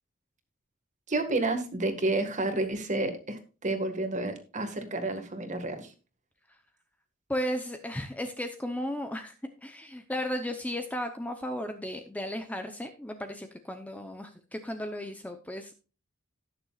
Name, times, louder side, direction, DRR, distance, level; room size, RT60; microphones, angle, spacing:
voice 1, 1.1-5.9, right 2 dB, 35° right, 7 dB, 1.8 m, -30 dB
voice 2, 7.3-9.3 9.6-15.7, equal, 5° left, 6 dB, 0.8 m, -35 dB
18.5 x 6.8 x 2.4 m, 0.33 s
head